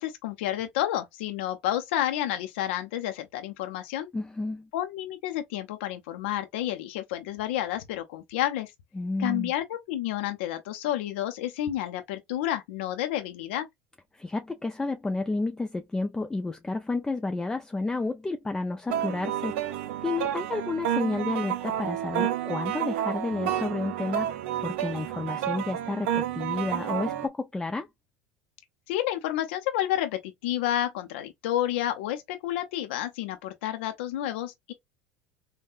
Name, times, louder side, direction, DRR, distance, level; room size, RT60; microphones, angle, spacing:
voice 1, 0.0-4.1 4.7-8.7 9.2-13.7 28.9-34.7, left 12 dB, 85° left, 0.5 m, -30 dB
voice 2, 4.1-4.7 8.9-9.5 14.1-27.9, left 3 dB, 10° left, 0.4 m, -31 dB
sound 1, 18.9-27.3, right 10 dB, 85° right, 0.5 m, -30 dB
3.6 x 2.1 x 2.4 m
supercardioid pair, 120°, 6 cm